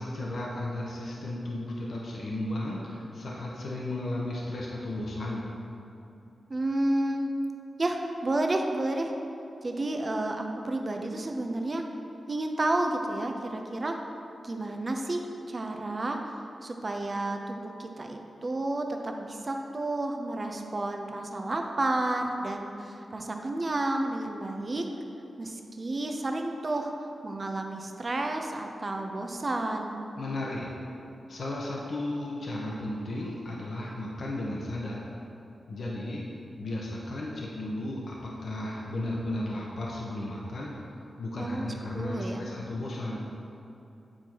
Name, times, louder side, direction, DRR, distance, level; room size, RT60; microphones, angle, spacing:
voice 1, 0.0-5.5 30.2-30.7 31.3-35.0 35.7-36.2 36.6-40.7 41.2-43.2, left 1 dB, 70° left, -4 dB, 0.9 m, -34 dB
voice 2, 6.5-7.3 7.8-9.1 9.6-11.8 12.3-13.9 14.4-16.3 16.6-24.8 25.4-26.9 27.2-30.0 41.4-41.7 41.9-42.5, right 2 dB, 40° right, 3 dB, 0.6 m, -31 dB
8.7 x 4.4 x 2.9 m, 2.9 s
cardioid pair, 65°, 0 cm